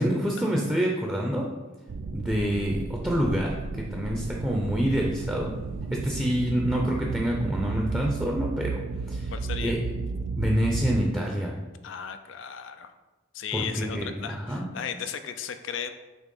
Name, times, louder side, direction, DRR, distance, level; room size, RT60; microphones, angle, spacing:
voice 1, 0.0-1.5 2.1-5.6 5.9-8.8 9.1-9.3 9.6-10.1 10.4-11.6 13.5-13.6 13.9-14.6, equal, 10° right, -1 dB, 0.6 m, -27 dB
sound 1, 1.9-11.1, right 4 dB, 90° right, 0.4 m, -33 dB
voice 2, 9.3-9.7 11.8-12.9 13.3-15.9, left 8 dB, 75° left, 8 dB, 0.4 m, -35 dB
6.5 x 3.0 x 5.3 m, 1.1 s
head